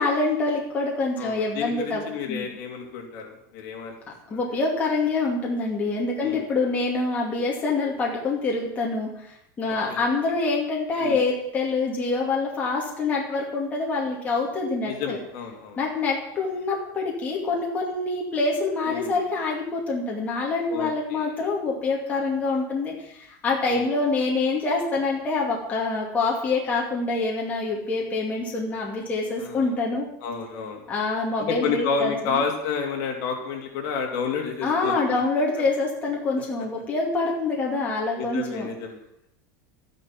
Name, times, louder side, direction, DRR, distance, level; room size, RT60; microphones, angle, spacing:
voice 1, 0.0-2.0 2.3-2.5 4.3-15.2 15.8-30.1 30.9-32.4 34.6-38.7, left 3 dB, 15° left, -3 dB, 2.3 m, -26 dB
voice 2, 1.2-4.0 4.3-4.5 6.2-6.5 9.9-10.1 11.0-11.2 14.8-15.8 18.9-19.1 20.7-21.3 23.7-23.8 29.4-29.8 30.2-30.8 31.4-35.2 35.6-35.7 38.2-39.0, left 5 dB, 50° left, 2 dB, 2.7 m, -30 dB
12.5 x 10.5 x 5.9 m, 0.76 s
supercardioid pair, 170°, 10 cm